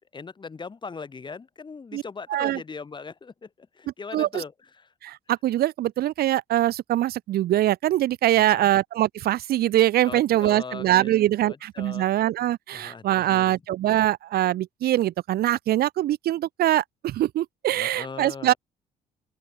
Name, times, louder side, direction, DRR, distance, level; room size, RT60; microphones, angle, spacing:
voice 1, 0.1-4.9 8.3-8.7 10.0-12.1 12.7-13.0 13.3-13.6 17.7-18.6, left 5 dB, 25° left, 7.2 m, -39 dB
voice 2, 4.1-4.4 5.0-18.5, right 13 dB, 65° right, 1.5 m, -23 dB
open air
cardioid pair, 110°, 17 cm